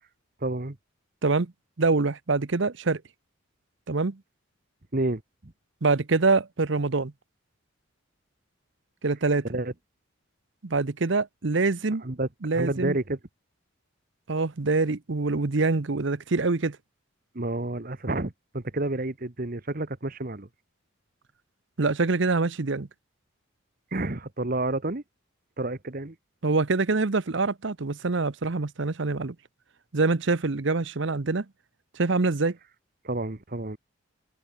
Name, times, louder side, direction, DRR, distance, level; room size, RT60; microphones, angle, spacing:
voice 1, 0.4-0.8 4.9-5.5 9.5-9.7 12.0-12.3 12.5-13.2 17.3-20.5 23.9-25.0 25.6-26.1 33.0-33.8, right 2 dB, 45° right, 1.3 m, -30 dB
voice 2, 1.2-1.5 1.8-3.0 3.9-4.2 5.8-7.1 9.0-9.5 10.6-12.0 12.4-13.0 14.3-16.8 21.8-22.9 26.4-29.4 29.9-31.4 32.0-32.6, right 3 dB, 60° right, 0.8 m, -25 dB
head